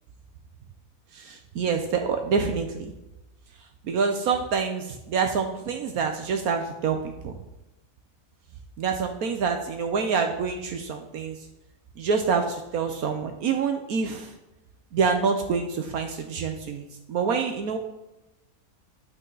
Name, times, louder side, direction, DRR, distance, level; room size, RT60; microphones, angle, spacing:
voice 1, 1.1-2.9 3.8-7.4 8.8-11.4 12.0-14.4 14.9-17.8, right 5 dB, 70° right, 5 dB, 1.3 m, -26 dB
9.0 x 7.7 x 3.9 m, 0.95 s
omnidirectional pair, 1.6 m